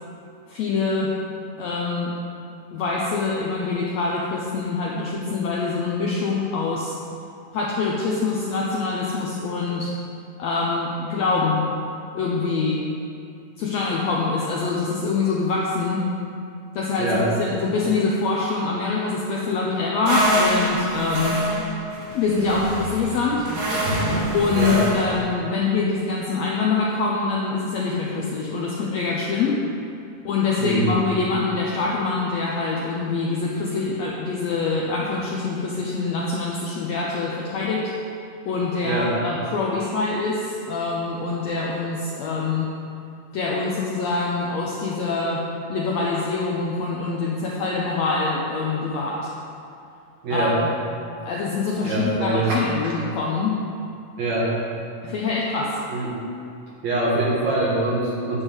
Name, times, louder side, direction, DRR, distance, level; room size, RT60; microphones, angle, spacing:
voice 1, 0.5-1.1 1.6-2.1 2.7-6.9 7.5-9.9 10.4-11.7 12.1-12.8 13.6-16.1 16.7-21.4 22.1-23.5 24.3-29.6 30.2-37.8 38.5-42.7 43.3-45.4 45.7-49.3 50.3-50.5 51.2-53.5 55.0-55.7, left 4 dB, 80° left, -4 dB, 1.6 m, -24 dB
voice 2, 17.0-17.3 23.9-24.1 24.6-24.8 30.6-30.9 38.8-39.1 50.2-50.6 51.8-52.9 54.2-54.5 55.9-56.2 56.8-58.4, right 2 dB, 60° right, -6 dB, 2.3 m, -24 dB
sound 1, 20.1-25.2, right 1 dB, 80° right, 3.3 m, -25 dB
9.7 x 3.6 x 7.0 m, 2.5 s
omnidirectional pair, 3.8 m